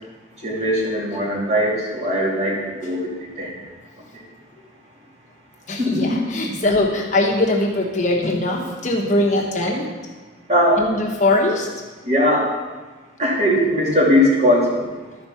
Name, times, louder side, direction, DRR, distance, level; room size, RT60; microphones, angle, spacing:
voice 1, 0.4-2.5 2.8-3.1 3.4-3.5 5.8-6.2 10.5-10.8 12.1-12.5 13.2-14.7, equal, 35° right, -5 dB, 2.4 m, -19 dB
voice 2, 5.7-9.9 10.8-11.7, left 2 dB, 40° left, -1 dB, 1.1 m, -21 dB
12.0 x 4.6 x 5.6 m, 1.3 s
head